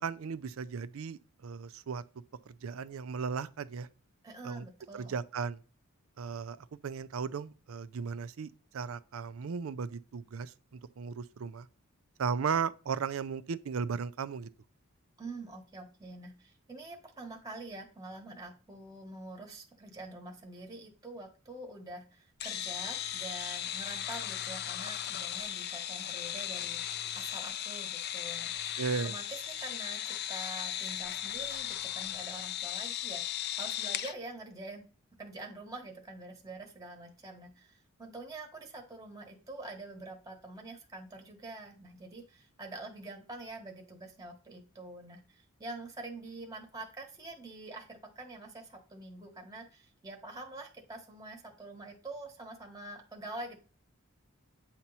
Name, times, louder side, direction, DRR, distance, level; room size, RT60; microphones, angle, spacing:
voice 1, 0.0-2.0 2.5-3.9 4.4-4.6 4.9-5.6 6.2-11.7 12.2-14.5 28.8-29.2, right 6 dB, 75° right, 0.4 m, -36 dB
voice 2, 4.2-5.2 15.2-28.7 29.0-34.8 35.2-53.6, right 2 dB, 15° right, 1.1 m, -46 dB
sound 1, 22.4-34.1, left 11 dB, 50° left, 0.4 m, -37 dB
8.5 x 2.9 x 5.4 m
head